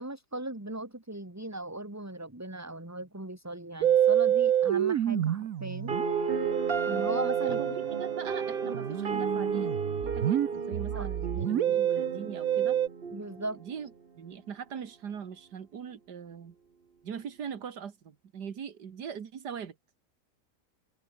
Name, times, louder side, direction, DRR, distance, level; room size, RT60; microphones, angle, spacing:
voice 1, 0.0-5.9 6.9-7.8 10.9-11.1 11.4-11.8 13.1-13.6, right 1 dB, 10° right, 2.2 m, -38 dB
Musical instrument, 3.8-12.9, right 10 dB, 60° right, 1.2 m, -28 dB
sound 1, 5.9-13.9, right 5 dB, 35° right, 1.5 m, -34 dB
voice 2, 7.5-12.8 13.5-16.6 17.0-19.8, right 7 dB, 85° right, 2.2 m, -41 dB
open air
omnidirectional pair, 1.7 m